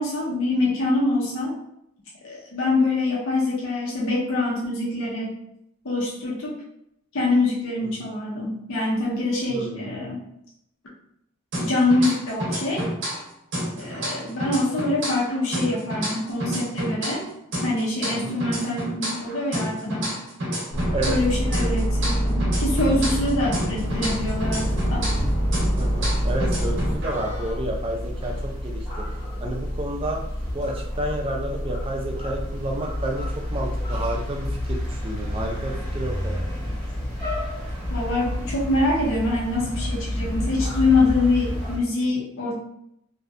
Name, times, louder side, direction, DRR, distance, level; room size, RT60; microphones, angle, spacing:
voice 1, 0.0-1.5 2.2-5.4 5.8-6.6 7.1-10.2 11.6-12.9 13.7-17.3 17.6-20.1 21.1-25.1 37.9-42.5, left 2 dB, 65° left, -5 dB, 0.5 m, -24 dB
voice 2, 9.5-10.0 13.8-14.1 18.2-18.4 20.9-21.2 25.8-29.1 29.4-30.2 30.5-36.8, right 1 dB, 25° right, 0 dB, 0.3 m, -31 dB
sound 1, 11.5-13.3 13.5-17.3 17.5-21.3 21.5-25.3 25.5-27.5, equal, 55° right, 0.6 m, -30 dB
sound 2, 20.7-27.0, equal, 90° left, 1.0 m, -25 dB
sound 3, 23.8-41.8, left 1 dB, 20° left, 0.7 m, -30 dB
2.6 x 2.1 x 2.4 m, 0.77 s
head